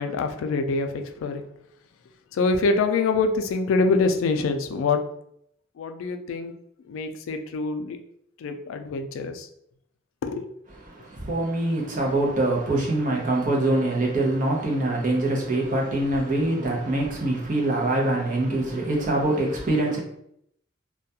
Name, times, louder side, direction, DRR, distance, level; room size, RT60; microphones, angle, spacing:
voice 1, 0.0-1.4 2.3-5.0 5.8-6.5 6.9-8.0 8.4-9.5 10.3-10.5, left 3 dB, 80° left, 0.3 m, -25 dB
voice 2, 10.7-20.0, right 2 dB, 40° right, 0.6 m, -24 dB
2.3 x 2.2 x 2.7 m
head